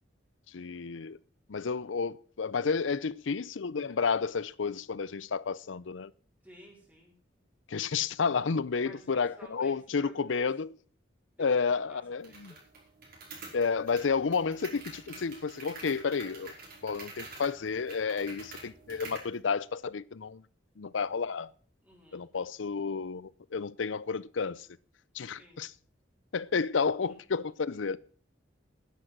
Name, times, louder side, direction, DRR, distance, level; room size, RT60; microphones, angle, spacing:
voice 1, 0.5-1.2 1.5-6.1 7.7-10.7 11.4-12.5 13.5-16.5 16.8-20.4 20.8-21.5 22.1-24.7 25.1-25.7 26.3-28.0, left 5 dB, 90° left, 0.6 m, -31 dB
voice 2, 6.4-7.2 8.8-10.5 11.4-12.7 21.8-22.3 25.2-25.6 27.1-27.2, equal, 10° right, 4.2 m, -54 dB
sound 1, 12.2-19.3, right 3 dB, 55° right, 5.5 m, -48 dB
11.5 x 10.5 x 6.0 m
head